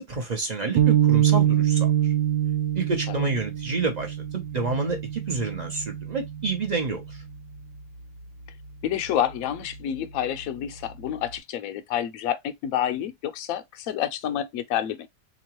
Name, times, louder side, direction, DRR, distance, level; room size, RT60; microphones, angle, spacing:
voice 1, 0.0-1.9 2.7-7.0, right 4 dB, 35° right, 0.7 m, -28 dB
sound 1, 0.8-7.2, right 11 dB, 80° right, 1.3 m, -24 dB
voice 2, 8.8-15.1, left 10 dB, 70° left, 0.9 m, -29 dB
3.6 x 2.9 x 2.9 m
omnidirectional pair, 1.8 m